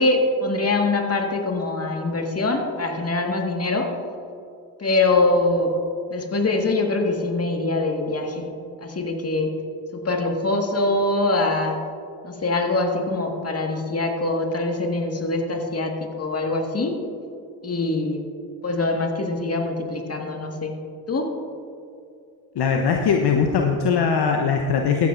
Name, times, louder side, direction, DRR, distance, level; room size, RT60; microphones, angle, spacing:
voice 1, 0.0-3.9 4.8-5.7 6.1-8.5 8.8-9.5 9.9-11.8 12.2-15.9 16.2-16.9 17.6-18.2 18.6-20.8 21.1-21.3, left 2 dB, 30° left, 2 dB, 1.9 m, -23 dB
voice 2, 22.6-25.1, left 5 dB, 55° left, 3 dB, 0.9 m, -20 dB
14.0 x 10.5 x 2.6 m, 2.5 s
hypercardioid pair, 45°, 48 cm